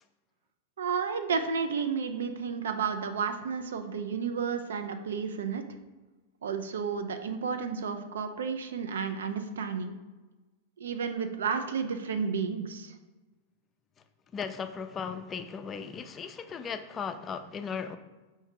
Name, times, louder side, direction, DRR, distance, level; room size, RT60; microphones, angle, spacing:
voice 1, 0.8-5.6 6.4-9.9 10.8-12.9, right 6 dB, 80° right, 0.4 m, -32 dB
voice 2, 14.3-18.0, left 6 dB, 25° left, 0.3 m, -37 dB
4.6 x 2.7 x 3.6 m
hypercardioid pair, 110°, 0 cm